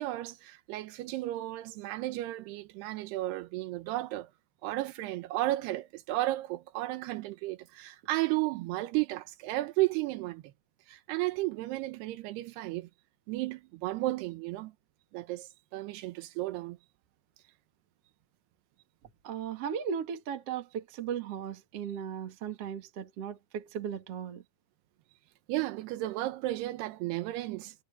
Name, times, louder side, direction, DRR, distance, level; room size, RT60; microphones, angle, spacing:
voice 1, 0.0-4.3 4.6-10.4 10.9-12.9 13.3-14.7 15.1-16.8 25.5-27.7, right 17 dB, 90° right, 3.0 m, -33 dB
voice 2, 19.2-24.4, right 8 dB, 50° right, 2.2 m, -37 dB
omnidirectional pair, 4.6 m